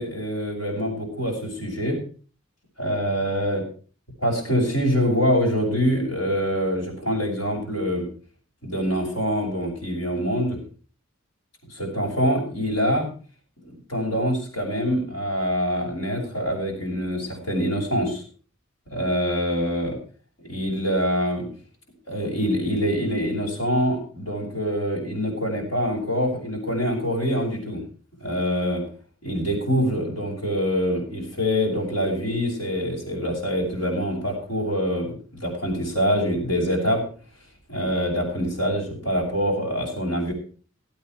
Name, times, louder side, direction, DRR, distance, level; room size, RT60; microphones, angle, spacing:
voice 1, 0.0-2.0 2.8-3.6 4.2-8.1 8.6-10.6 11.7-13.1 13.6-18.2 18.9-20.0 20.4-21.5 22.1-27.8 28.2-28.8 29.2-37.0 37.7-40.3, equal, 75° left, -2 dB, 5.9 m, -25 dB
16.5 x 8.9 x 4.6 m, 0.41 s
head